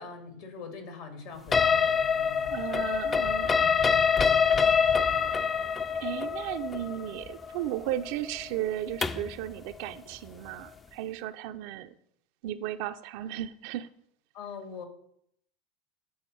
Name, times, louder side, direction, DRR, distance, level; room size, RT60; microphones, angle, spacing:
voice 1, 0.0-2.8 14.3-14.8, left 5 dB, 65° left, 5 dB, 1.9 m, -43 dB
sound 1, 1.5-9.3, left 6 dB, 25° left, 0.4 m, -25 dB
voice 2, 2.5-3.7 4.3-4.4 6.0-11.9 12.4-13.9, right 12 dB, 60° right, 11 dB, 0.4 m, -35 dB
7.8 x 4.0 x 5.3 m, 0.71 s
figure-of-eight pair, 75°, 0 cm